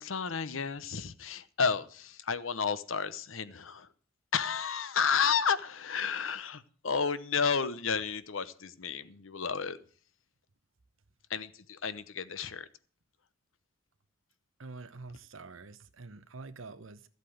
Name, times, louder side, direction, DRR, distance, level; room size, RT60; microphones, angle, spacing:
voice 1, 0.0-3.9 4.3-9.8 11.3-12.7, left 6 dB, 75° left, 0.9 m, -32 dB
voice 2, 14.6-17.1, right 3 dB, 75° right, 1.0 m, -46 dB
13.5 x 8.3 x 6.5 m
head